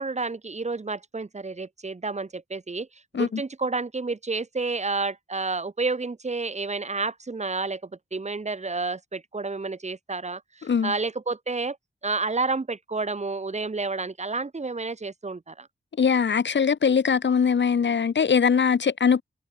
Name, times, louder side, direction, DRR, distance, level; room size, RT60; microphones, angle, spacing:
voice 1, 0.0-2.9 3.1-11.8 12.0-15.7, right 3 dB, 35° right, 2.9 m, -30 dB
voice 2, 10.6-10.9 16.0-19.2, left 6 dB, 65° left, 2.0 m, -21 dB
wide cardioid pair, 90°, 20 cm